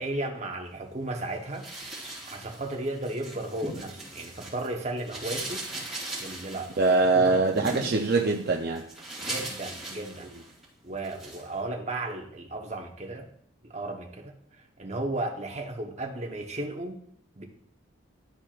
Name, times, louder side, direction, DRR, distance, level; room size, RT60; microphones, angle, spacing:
voice 1, 0.0-1.7 2.3-5.7 6.2-7.4 9.2-10.3 10.8-13.3 13.6-14.3 14.8-17.0 17.4-17.5, right 2 dB, 35° right, 2 dB, 0.9 m, -34 dB
sound 1, 1.5-4.7 5.0-10.6 11.0-11.5, right 1 dB, ahead, 2.7 m, -39 dB
voice 2, 6.8-8.8, right 3 dB, 50° right, 1 dB, 0.5 m, -23 dB
12.0 x 4.4 x 2.4 m, 0.67 s
head